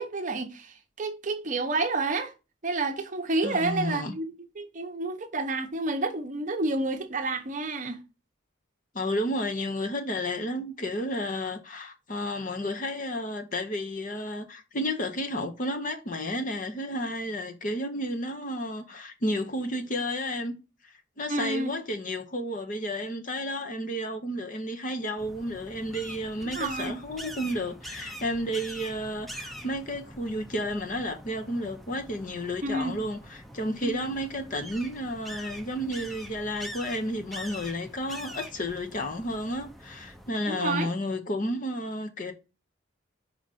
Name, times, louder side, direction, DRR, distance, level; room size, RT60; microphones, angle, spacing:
voice 1, 0.0-2.3 2.6-8.0 21.3-21.7 26.6-27.0 32.6-32.9 33.8-34.1 40.5-40.9, right 2 dB, 40° right, 0.8 m, -30 dB
voice 2, 3.4-4.1 8.9-20.6 21.2-42.3, equal, 45° left, 0.9 m, -32 dB
sound 1, 25.2-40.3, equal, ahead, 0.6 m, -44 dB
4.9 x 4.9 x 4.1 m
head